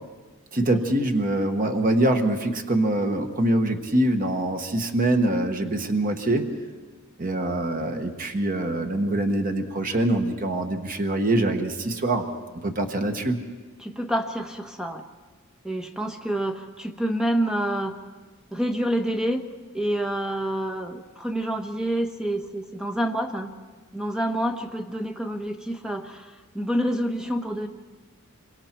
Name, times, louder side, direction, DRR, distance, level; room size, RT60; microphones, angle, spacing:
voice 1, 0.5-6.4 7.2-12.3 12.6-13.4, right 1 dB, 40° right, 5 dB, 1.3 m, -24 dB
voice 2, 13.8-15.0 15.6-17.9 18.5-19.4 19.7-23.5 23.9-27.7, right 1 dB, 5° right, 4 dB, 1.2 m, -28 dB
26.0 x 24.0 x 4.5 m, 1.3 s
head